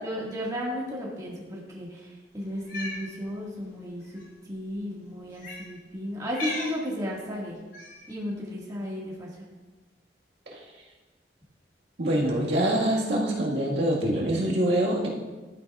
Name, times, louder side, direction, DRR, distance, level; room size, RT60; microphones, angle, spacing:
voice 1, 0.0-7.6 8.1-9.4, equal, 20° right, -4 dB, 1.8 m, -34 dB
Cat, 2.5-3.0 4.1-4.2 5.4-5.7 6.3-6.8 7.7-8.1, left 1 dB, 75° left, 3.0 m, -36 dB
voice 2, 12.0-15.1, right 1 dB, 75° right, -4 dB, 1.7 m, -25 dB
12.5 x 9.5 x 2.4 m, 1.2 s
head